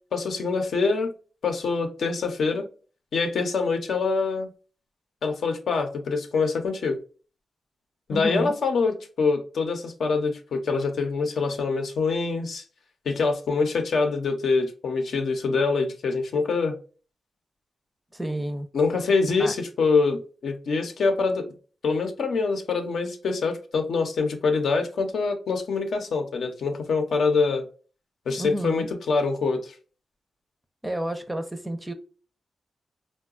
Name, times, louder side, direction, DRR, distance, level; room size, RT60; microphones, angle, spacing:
voice 1, 0.1-1.1 1.4-2.7 3.1-4.5 5.2-7.0 8.1-12.6 13.1-16.7 18.7-21.4 21.8-27.6 28.3-29.7, left 4 dB, 85° left, 5 dB, 0.6 m, -25 dB
voice 2, 8.1-8.5 18.1-18.7 19.4-19.5 28.4-28.9 30.8-31.9, right 1 dB, 10° right, 8 dB, 0.5 m, -30 dB
3.8 x 2.2 x 2.4 m, 0.38 s
wide cardioid pair, 110°, 0 cm